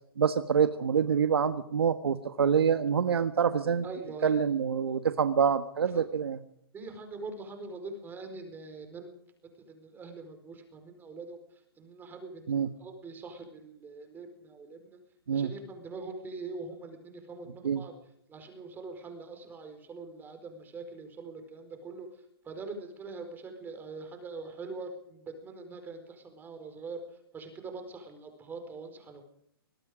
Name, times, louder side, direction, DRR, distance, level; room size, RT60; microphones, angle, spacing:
voice 1, 0.2-3.9 4.2-6.4 12.5-12.7 15.3-15.5 17.6-17.8, right 7 dB, 80° right, 10 dB, 1.5 m, -26 dB
voice 2, 3.8-4.5 5.9-6.0 6.7-9.1 9.6-11.4 11.8-15.0 15.3-17.9 18.3-22.1 22.4-27.0 27.3-29.2, right 3 dB, 15° right, 6 dB, 4.6 m, -43 dB
24.5 x 21.0 x 5.1 m, 0.71 s
hypercardioid pair, 140°, 13 cm